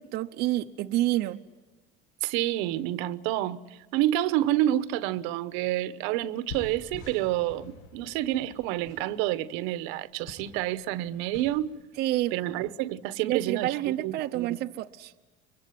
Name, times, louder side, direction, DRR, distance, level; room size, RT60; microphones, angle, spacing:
voice 1, 0.0-1.4 12.0-12.3 13.3-15.1, right 15 dB, 50° right, 0.8 m, -28 dB
voice 2, 2.2-11.7 12.3-14.6, right 14 dB, 75° right, 1.1 m, -29 dB
sound 1, 6.2-11.7, left 3 dB, 70° left, 6.2 m, -47 dB
24.5 x 24.0 x 9.4 m
cardioid pair, 150°, 21 cm